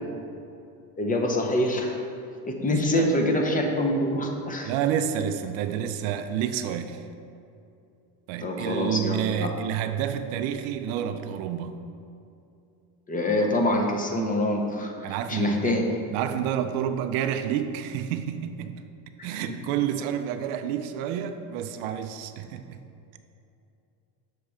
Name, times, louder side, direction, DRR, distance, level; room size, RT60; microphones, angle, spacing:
voice 1, 1.0-2.0 2.5-4.7 8.4-9.5 13.1-14.9 15.3-15.8, left 1 dB, 20° left, 2 dB, 0.6 m, -25 dB
voice 2, 2.7-3.1 4.6-7.0 8.3-11.8 15.0-15.8 16.1-18.7 19.2-22.8, right 9 dB, 70° right, 9 dB, 0.5 m, -29 dB
6.5 x 3.1 x 4.8 m, 2.6 s
supercardioid pair, 100°, 45 cm